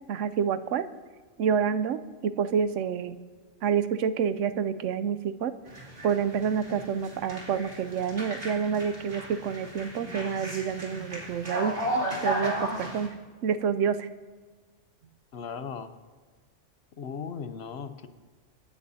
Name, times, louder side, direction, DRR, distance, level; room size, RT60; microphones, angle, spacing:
voice 1, 0.1-0.8 1.4-3.1 3.6-5.5 6.0-11.9 12.2-13.1 13.4-14.1, right 7 dB, 80° right, 13 dB, 1.0 m, -28 dB
sound 1, 5.7-13.1, right 1 dB, 65° right, 3.0 m, -34 dB
voice 2, 15.3-15.9 17.0-18.1, left 6 dB, 60° left, 10 dB, 0.9 m, -37 dB
26.0 x 9.6 x 2.7 m, 1.4 s
omnidirectional pair, 1.3 m